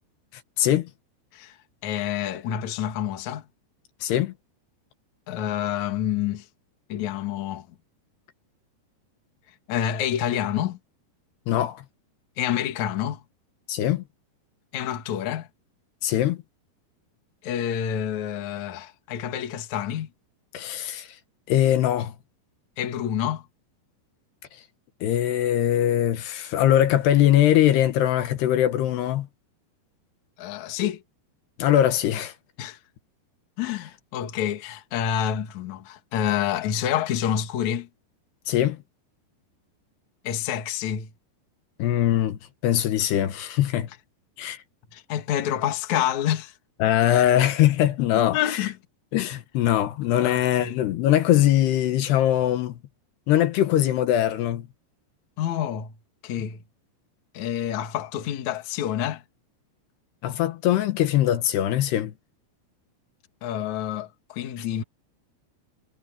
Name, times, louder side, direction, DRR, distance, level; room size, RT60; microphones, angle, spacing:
voice 1, 0.6-0.9 4.0-4.3 11.5-11.8 13.7-14.0 16.0-16.4 20.5-21.1 21.5-22.1 25.0-29.3 31.6-32.3 38.5-38.8 41.8-43.9 44.4-44.6 46.8-48.7 49.1-52.8 53.3-54.7 60.2-62.1 64.6-64.7, left 12 dB, 80° left, 3.3 m, -22 dB
voice 2, 1.8-3.4 5.3-6.5 6.9-7.7 9.7-10.8 12.4-13.2 14.7-15.5 17.4-20.1 22.8-23.4 30.4-31.0 32.6-32.8 33.6-37.9 40.2-41.1 44.9-46.5 48.0-48.7 50.2-50.8 55.4-55.9 56.2-56.6 57.3-59.2 63.4-64.8, left 10 dB, 55° left, 2.6 m, -28 dB
omnidirectional pair, 4.9 m